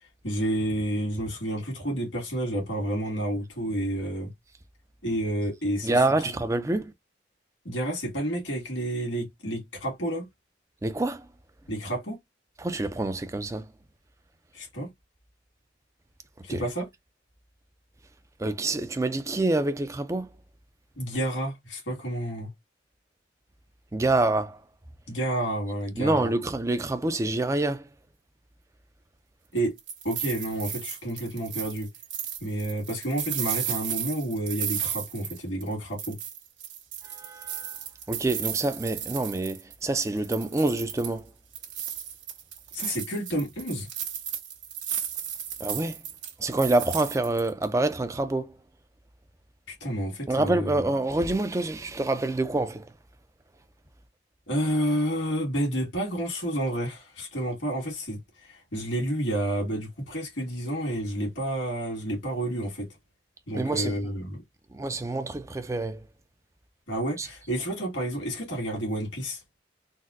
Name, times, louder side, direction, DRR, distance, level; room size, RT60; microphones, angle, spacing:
voice 1, 0.2-4.3 5.0-6.0 7.7-10.3 11.7-12.2 14.5-14.9 16.4-16.9 21.0-22.5 25.1-26.3 29.5-29.7 30.0-31.9 32.4-36.2 42.7-43.9 49.7-50.7 54.5-62.9 63.5-64.4 66.9-69.4, right 1 dB, 80° left, 1.9 m, -30 dB
voice 2, 5.8-6.9 10.8-11.3 12.6-13.7 16.5-16.6 18.4-20.3 23.9-24.6 25.9-27.9 37.0-37.8 38.1-41.3 45.6-46.0 46.4-48.6 50.3-52.9 63.5-64.1 64.7-66.0 67.2-67.3, right 2 dB, 15° right, 0.3 m, -27 dB
sound 1, 29.6-35.7 36.0-39.7 40.0-41.2 41.5-47.6, right 9 dB, 85° right, 1.2 m, -34 dB
4.0 x 2.1 x 2.5 m
head